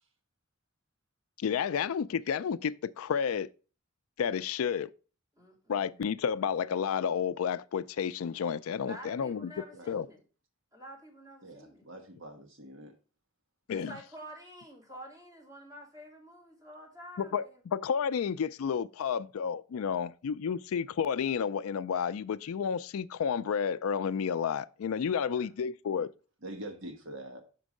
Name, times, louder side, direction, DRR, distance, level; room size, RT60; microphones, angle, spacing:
voice 1, 1.4-3.5 4.2-4.9 5.7-9.5 9.9-10.0 13.7-13.9 17.2-26.1, left 7 dB, 80° left, 0.4 m, -31 dB
voice 2, 5.4-6.1 8.8-10.2 10.7-11.9 13.7-17.6 25.3-25.5, right 1 dB, 15° right, 2.6 m, -49 dB
voice 3, 11.4-12.9 26.4-27.4, right 1 dB, 60° right, 1.3 m, -44 dB
6.1 x 4.5 x 6.4 m
head